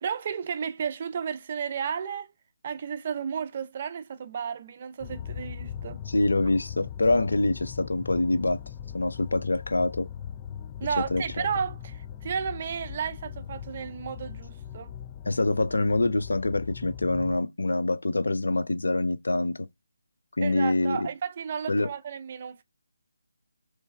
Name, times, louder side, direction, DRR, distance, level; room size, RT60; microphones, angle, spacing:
voice 1, 0.0-2.3 2.6-6.0 10.8-14.9 20.4-22.6, right 7 dB, 35° right, 0.5 m, -33 dB
sound 1, 5.0-17.4, left 9 dB, 20° left, 0.3 m, -40 dB
voice 2, 6.1-8.6 8.9-10.1 11.1-11.5 15.3-19.7 20.4-21.1 21.7-21.9, left 2 dB, 75° left, 0.6 m, -25 dB
3.2 x 3.2 x 3.3 m
figure-of-eight pair, 155°, 0 cm